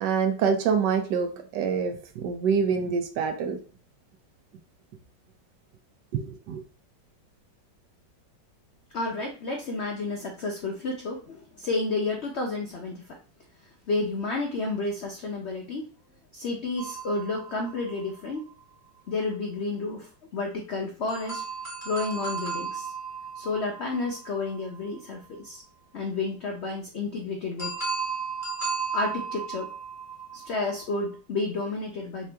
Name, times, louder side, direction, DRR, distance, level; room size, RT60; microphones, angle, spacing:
voice 1, 0.0-3.6 6.1-6.6, right 6 dB, 75° right, 6 dB, 1.2 m, -26 dB
voice 2, 8.9-13.1 13.9-15.9 16.3-18.5 19.1-21.4 21.8-22.9 23.3-25.6 25.9-27.8 28.9-29.7 30.3-32.3, left 3 dB, 80° left, 0 dB, 0.6 m, -31 dB
sound 1, 16.8-18.5 21.1-25.0 27.6-31.1, right 5 dB, 10° left, 1.2 m, -35 dB
3.4 x 2.9 x 3.3 m, 0.37 s
omnidirectional pair, 2.0 m